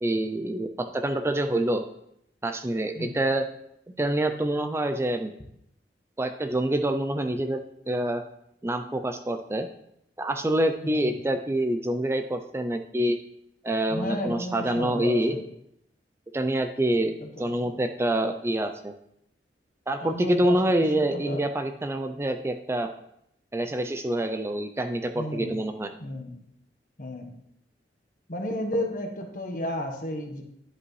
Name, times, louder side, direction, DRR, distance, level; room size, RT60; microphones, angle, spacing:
voice 1, 0.0-1.8 2.4-3.5 4.0-5.3 6.2-8.2 8.6-9.7 10.2-13.2 13.6-15.4 16.3-19.0 19.9-22.9 23.5-25.9, right 1 dB, 15° right, 7 dB, 0.4 m, -26 dB
voice 2, 13.9-15.5 17.2-17.8 20.0-21.5 25.1-25.6 26.0-26.4 27.0-27.3 28.3-30.4, left 1 dB, 50° left, 3 dB, 1.2 m, -33 dB
11.0 x 5.1 x 3.2 m, 0.76 s
head